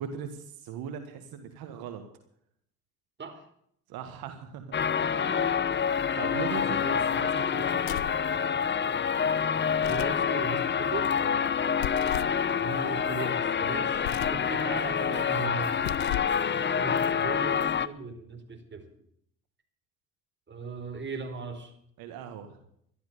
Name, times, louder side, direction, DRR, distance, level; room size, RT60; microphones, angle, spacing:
voice 1, 0.0-2.0 3.9-4.7 5.0-5.5 6.2-7.9 11.2-11.5 14.6-15.7 22.0-22.6, right 7 dB, 75° right, 7 dB, 2.0 m, -39 dB
sound 1, 4.7-17.9, left 7 dB, 30° left, 0.9 m, -27 dB
voice 2, 6.6-7.2 9.8-11.1 12.6-14.6 15.3-15.8 16.8-18.8 20.5-21.7, right 4 dB, 30° right, 5 dB, 4.1 m, -38 dB
sound 2, 7.8-8.3 9.7-10.2 11.8-12.4 13.9-14.5 15.7-16.4, left 17 dB, 80° left, 0.6 m, -36 dB
13.5 x 12.0 x 6.9 m, 0.69 s
supercardioid pair, 75°, 37 cm